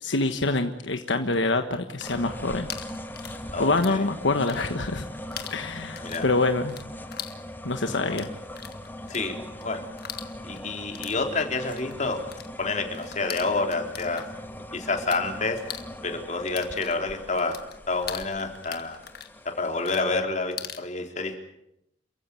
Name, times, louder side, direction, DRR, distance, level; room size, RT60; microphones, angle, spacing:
voice 1, 0.0-2.7 3.6-5.0 5.5-6.8 7.6-8.3, left 2 dB, 80° left, 7 dB, 1.4 m, -25 dB
sound 1, 1.8-4.0 4.3-5.0 5.3-15.2 15.5-20.9, left 10 dB, 60° left, 1.8 m, -41 dB
sound 2, 2.0-20.2, left 1 dB, 10° left, 1.9 m, -41 dB
voice 2, 3.5-4.1 6.0-6.3 7.9-8.2 9.1-9.9 10.4-12.2 12.6-14.3 14.7-15.6 16.0-17.6 17.9-19.0 19.4-21.4, left 3 dB, 40° left, 3 dB, 3.9 m, -29 dB
28.5 x 15.5 x 9.1 m, 0.79 s
head